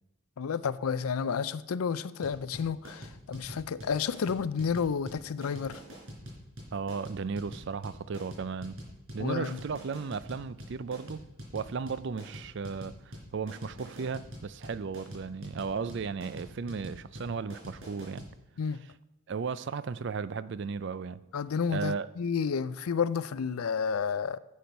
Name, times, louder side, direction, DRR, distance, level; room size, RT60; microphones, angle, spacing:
voice 1, 0.4-5.8 9.2-9.6 18.6-18.8 21.3-24.4, left 6 dB, 90° left, 0.5 m, -31 dB
sound 1, 2.2-18.3, equal, 90° right, 4.4 m, -45 dB
voice 2, 6.7-8.8 9.1-11.2 11.5-18.2 19.3-21.2 21.7-22.1, right 5 dB, 55° right, 0.4 m, -35 dB
10.0 x 8.5 x 5.3 m
head